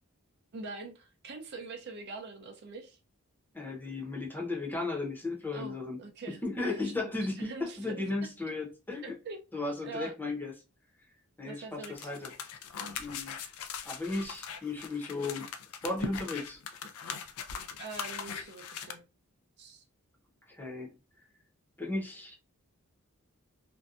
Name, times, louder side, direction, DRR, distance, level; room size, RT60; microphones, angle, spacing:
voice 1, 0.5-3.0 5.5-7.1 7.4-8.0 9.2-9.4 9.8-10.1 11.4-12.1 17.8-19.0 19.6-19.8, right 3 dB, 50° right, 3 dB, 0.5 m, -43 dB
voice 2, 3.5-6.0 6.4-7.5 7.8-9.1 9.5-10.5 11.4-12.3 13.0-13.3 13.8-15.4 15.8-16.6 20.5-20.9 21.8-22.4, left 2 dB, 10° left, -1 dB, 0.7 m, -35 dB
sound 1, 11.8-18.9, left 6 dB, 90° left, 0.4 m, -40 dB
2.6 x 2.2 x 2.3 m, 0.29 s
head